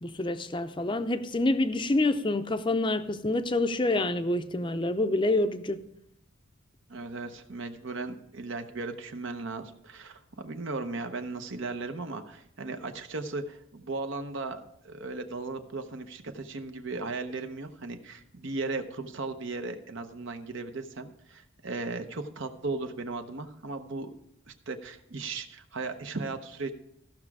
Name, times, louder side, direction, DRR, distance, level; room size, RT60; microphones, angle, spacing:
voice 1, 0.0-5.8, left 2 dB, 25° left, 0.6 m, -27 dB
voice 2, 6.9-24.1 24.5-26.7, right 3 dB, 65° right, 0.8 m, -36 dB
15.0 x 6.0 x 4.7 m
head